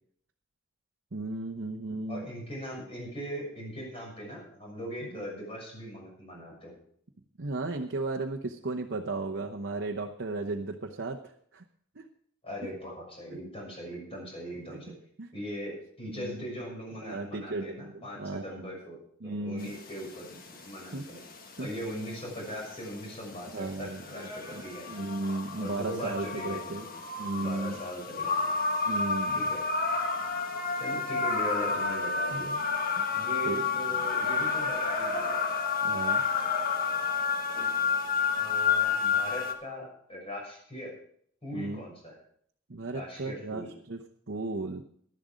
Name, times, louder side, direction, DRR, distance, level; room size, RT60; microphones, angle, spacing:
voice 1, 1.1-2.3 5.2-5.3 7.4-11.6 11.9-12.1 12.6-12.7 13.3-13.4 13.9-14.2 14.7-15.3 16.1-16.4 17.0-18.6 19.2-19.7 20.9-21.0 21.6-21.7 23.5-26.9 27.2-27.8 28.9-29.5 32.3-32.6 33.0-33.6 35.8-36.2 41.5-41.8 42.7-44.0 44.3-44.8, right 2 dB, 55° right, 2 dB, 1.0 m, -35 dB
voice 2, 2.1-6.8 12.4-14.9 15.3-21.2 21.6-25.1 25.6-26.9 27.3-28.5 29.3-29.6 30.8-32.5 33.1-35.4 38.4-40.9 41.4-42.2 42.9-43.7, equal, 30° left, -2 dB, 6.7 m, -40 dB
sound 1, 19.6-39.5, left 5 dB, 45° left, 1.5 m, -30 dB
12.0 x 11.5 x 5.1 m, 0.64 s
head